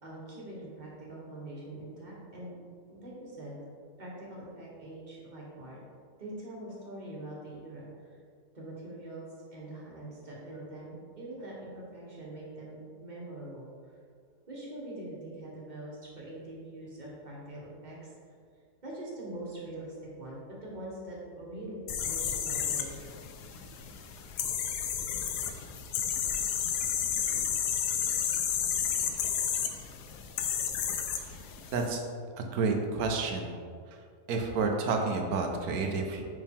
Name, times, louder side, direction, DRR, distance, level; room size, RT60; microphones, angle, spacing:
voice 1, 0.0-2.6 2.9-3.6 4.0-5.8 6.2-8.2 8.5-13.7 14.5-18.1 18.8-23.2, right 1 dB, 30° right, -5 dB, 1.3 m, -43 dB
sound 1, 21.9-31.9, left 8 dB, 90° left, 1.2 m, -32 dB
voice 2, 31.7-32.0 32.4-33.6 34.3-36.2, right 4 dB, 70° right, 3 dB, 1.2 m, -30 dB
5.6 x 4.7 x 3.6 m, 2.1 s
omnidirectional pair, 1.7 m